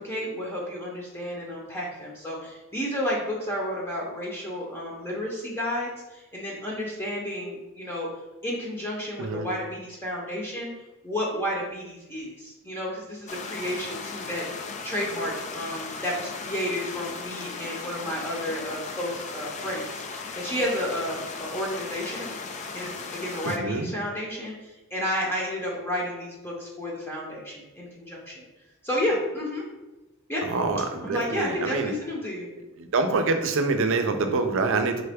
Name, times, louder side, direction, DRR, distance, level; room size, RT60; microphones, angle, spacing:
voice 1, 0.0-8.1 8.4-10.7 11.0-22.3 22.7-28.5 28.8-29.6 30.3-30.4 31.0-32.5, equal, 10° left, -3 dB, 0.7 m, -31 dB
sound 1, 13.3-23.6, left 4 dB, 35° left, 0.3 m, -37 dB
voice 2, 23.4-23.9 30.4-31.9 32.8-35.0, right 3 dB, 65° right, 6 dB, 0.5 m, -26 dB
3.9 x 3.3 x 3.4 m, 1.0 s
head